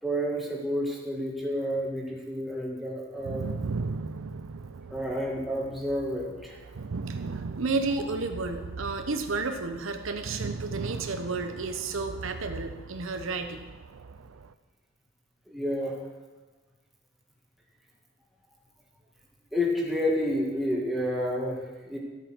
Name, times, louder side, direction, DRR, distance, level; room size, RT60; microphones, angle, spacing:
voice 1, 0.0-3.5 4.9-6.6 15.5-15.9 19.5-22.0, equal, ahead, -3 dB, 2.0 m, -30 dB
sound 1, 3.2-14.5, right 4 dB, 90° right, 0.5 m, -38 dB
voice 2, 6.7-13.7, right 3 dB, 75° right, 6 dB, 0.9 m, -32 dB
12.5 x 8.4 x 6.0 m, 1.3 s
head